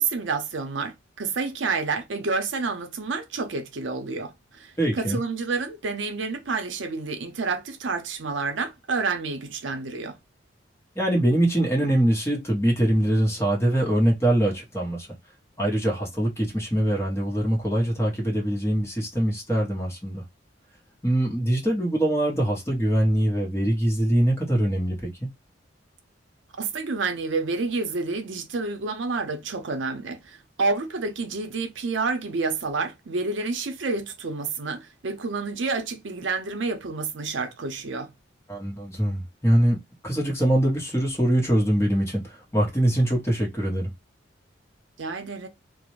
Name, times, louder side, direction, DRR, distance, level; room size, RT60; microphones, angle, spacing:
voice 1, 0.0-10.2 26.5-38.1 45.0-45.5, right 4 dB, 80° right, 0.6 m, -29 dB
voice 2, 4.8-5.2 11.0-15.1 15.6-20.2 21.0-25.3 38.5-43.9, right 1 dB, 15° left, 0.9 m, -23 dB
2.4 x 2.0 x 2.9 m
head